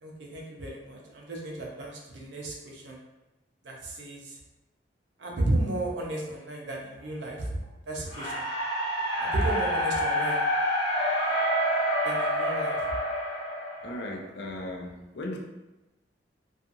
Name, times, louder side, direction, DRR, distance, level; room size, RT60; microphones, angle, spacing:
voice 1, 0.0-3.0 3.6-4.4 5.2-7.5 7.9-8.4 9.2-10.4 12.0-12.8, right 1 dB, 80° right, -1 dB, 0.6 m, -33 dB
sound 1, 8.1-14.3, equal, 30° left, 0.7 m, -28 dB
voice 2, 13.8-15.4, left 1 dB, 65° left, 1 dB, 0.4 m, -37 dB
2.8 x 2.4 x 2.5 m, 1.0 s
head